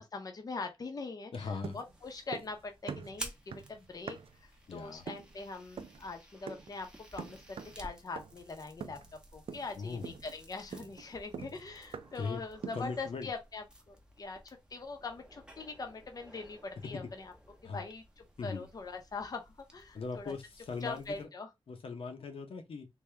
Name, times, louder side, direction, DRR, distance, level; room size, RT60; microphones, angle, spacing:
voice 1, 0.1-7.4 7.8-9.0 9.3-17.3 17.6-20.3 20.8-21.5, left 3 dB, 40° left, 0.6 m, -42 dB
voice 2, 1.3-1.8 4.7-5.0 9.8-10.1 12.1-12.4 12.7-13.3 17.6-17.8 18.4-18.6 19.9-21.3 21.7-22.9, left 4 dB, 75° left, 0.8 m, -39 dB
sound 1, 1.4-21.2, right 1 dB, 10° right, 0.7 m, -54 dB
sound 2, 1.6-2.6 2.9-4.5 5.1-5.4 5.8-6.0 6.5-6.8 7.2-7.8 8.2-8.5 8.8-9.2 9.5-9.8 10.0-12.3 12.6-13.0, right 6 dB, 75° right, 0.4 m, -44 dB
3.4 x 2.7 x 3.2 m
wide cardioid pair, 155°, 9 cm